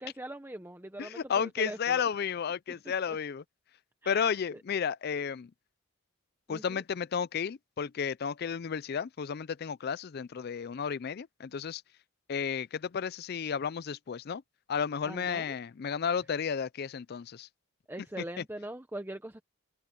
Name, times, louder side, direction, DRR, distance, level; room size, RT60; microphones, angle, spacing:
voice 1, 0.0-2.1 2.7-3.2 4.0-4.3 6.5-6.8 15.0-15.5 17.9-19.4, right 1 dB, 10° right, 0.8 m, -42 dB
voice 2, 1.0-3.4 4.1-5.5 6.5-11.8 12.3-14.4 14.7-17.5 18.4-18.5, left 7 dB, 50° left, 0.4 m, -32 dB
head